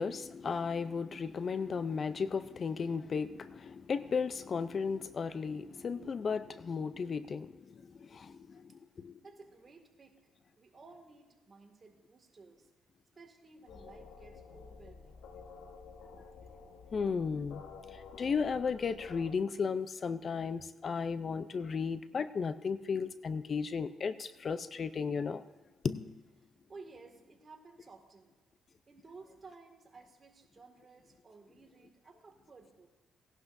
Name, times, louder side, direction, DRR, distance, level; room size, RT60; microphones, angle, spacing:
voice 1, 0.0-9.2 16.9-17.6 17.9-25.4 25.8-26.2, left 5 dB, 45° left, 13 dB, 0.5 m, -35 dB
voice 2, 9.2-12.7 13.2-15.2 26.4-28.4 28.9-32.9, right 4 dB, 35° right, 3 dB, 2.0 m, -55 dB
sound 1, 13.7-19.4, left 5 dB, 80° left, 1.2 m, -51 dB
17.5 x 11.5 x 2.6 m, 1.3 s
cardioid pair, 90°, 0 cm